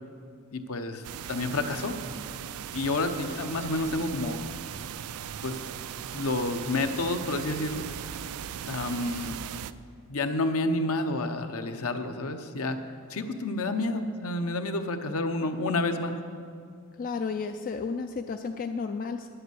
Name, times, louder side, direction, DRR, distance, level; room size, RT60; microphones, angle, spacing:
voice 1, 0.5-2.0 2.7-4.4 5.4-5.6 6.1-7.9 8.7-9.4 10.1-12.8 13.1-16.1, left 2 dB, 65° left, 7 dB, 0.8 m, -29 dB
sound 1, 1.0-9.7, right 9 dB, 70° right, 0.4 m, -38 dB
voice 2, 16.9-19.3, left 5 dB, 40° left, 7 dB, 0.3 m, -32 dB
10.0 x 7.9 x 7.9 m, 2.3 s
head